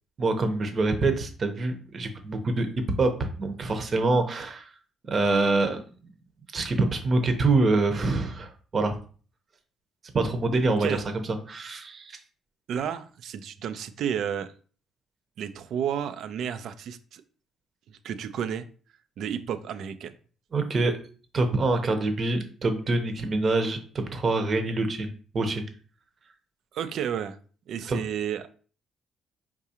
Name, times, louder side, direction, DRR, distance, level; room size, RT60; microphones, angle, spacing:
voice 1, 0.2-2.7 3.0-4.7 5.1-5.8 6.5-9.0 10.1-11.0 11.5-12.2 20.5-21.0 21.3-23.8 24.1-25.6 27.9-28.0, right 3 dB, 45° right, 6 dB, 0.8 m, -25 dB
voice 2, 12.7-14.5 15.4-17.2 17.9-18.7 19.2-20.1 26.7-27.4 27.7-28.5, right 8 dB, 70° right, 11 dB, 0.4 m, -31 dB
4.7 x 3.6 x 2.8 m, 0.41 s
supercardioid pair, 70°, 0 cm